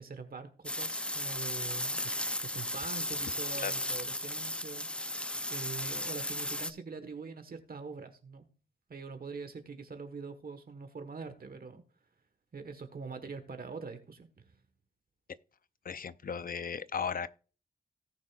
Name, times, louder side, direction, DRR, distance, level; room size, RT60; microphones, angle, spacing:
voice 1, 0.0-4.9 5.5-8.5 8.9-11.8 12.5-14.6, right 4 dB, 60° right, 1.3 m, -44 dB
sound 1, 0.6-6.7, left 1 dB, 5° left, 0.5 m, -35 dB
voice 2, 15.8-17.3, left 6 dB, 55° left, 0.5 m, -36 dB
17.5 x 6.3 x 2.4 m
wide cardioid pair, 75°, 17 cm